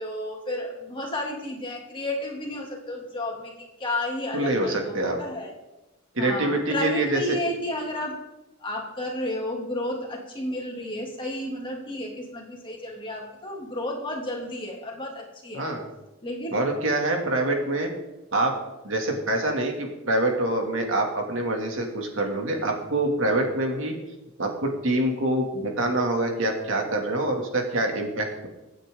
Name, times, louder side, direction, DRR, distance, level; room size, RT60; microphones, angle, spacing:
voice 1, 0.0-3.5 3.8-5.5 6.2-8.2 8.6-15.7 16.2-16.5, left 1 dB, 25° left, -1 dB, 2.8 m, -32 dB
voice 2, 4.3-5.2 6.1-7.4 15.5-15.8 16.5-17.9 18.3-18.5 18.8-23.9 24.4-28.5, right 1 dB, 65° right, 2 dB, 2.7 m, -25 dB
25.0 x 9.1 x 3.9 m, 0.99 s
head